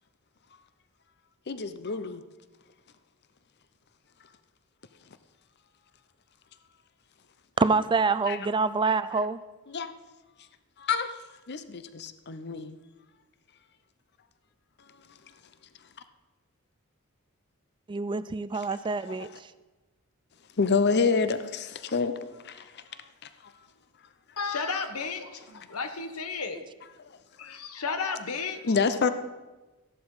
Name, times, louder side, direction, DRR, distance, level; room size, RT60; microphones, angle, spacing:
voice 1, 1.5-2.2 8.3-8.4 9.7-9.9 10.8-11.1 11.5-12.8 19.1-19.2 20.6-22.1 22.4-22.6 28.6-29.1, left 4 dB, 50° left, 11 dB, 0.7 m, -27 dB
voice 2, 7.6-9.4 17.9-19.3, right 4 dB, 20° right, 14 dB, 0.3 m, -26 dB
voice 3, 24.4-26.6 27.4-28.6, left 4 dB, 90° left, 8 dB, 1.3 m, -33 dB
14.0 x 11.0 x 4.8 m, 1.2 s
head